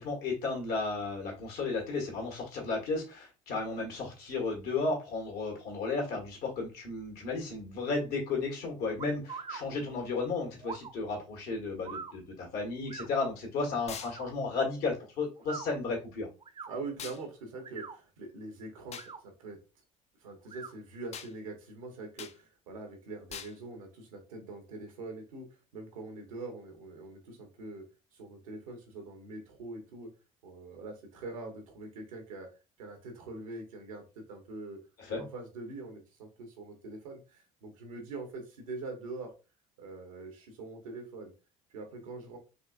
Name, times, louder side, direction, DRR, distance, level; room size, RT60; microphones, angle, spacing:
voice 1, 0.0-16.3 35.0-35.2, left 3 dB, 70° left, 0 dB, 1.5 m, -34 dB
sound 1, 9.0-9.6 10.6-10.9 11.8-12.1 12.9-13.1 14.0-14.3 15.4-15.7 16.4-16.7 17.5-18.0 18.8-19.2 20.5-20.7, right 5 dB, 30° right, 0.6 m, -42 dB
sound 2, 13.9-14.2 17.0-17.2 18.9-19.1 21.1-21.3 22.2-22.4 23.3-23.6, left 7 dB, 40° left, 0.4 m, -42 dB
voice 2, 16.7-19.6 20.2-25.5 25.7-27.8 28.1-30.1 30.4-32.5 32.8-34.8 35.1-39.3 39.8-41.3 41.7-42.4, right 3 dB, 90° right, 3 dB, 1.0 m, -43 dB
4.0 x 3.1 x 2.4 m, 0.31 s
hypercardioid pair, 60°, 17 cm